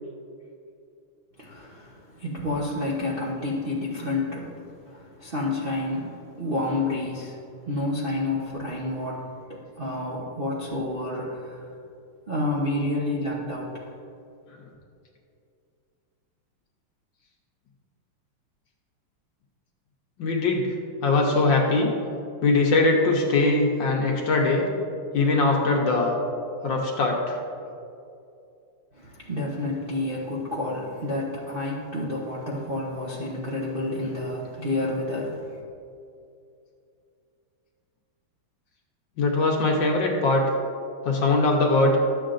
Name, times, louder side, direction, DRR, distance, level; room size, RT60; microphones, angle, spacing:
voice 1, 1.4-7.4 7.6-11.6 12.3-13.8 28.9-35.6, left 2 dB, 60° right, -6 dB, 0.5 m, -29 dB
voice 2, 20.2-20.7 21.0-21.9 22.4-24.7 25.1-26.2 26.6-27.4 39.2-40.5 41.0-42.0, left 3 dB, 65° left, 0 dB, 1.4 m, -21 dB
12.0 x 7.5 x 2.5 m, 2.5 s
omnidirectional pair, 2.4 m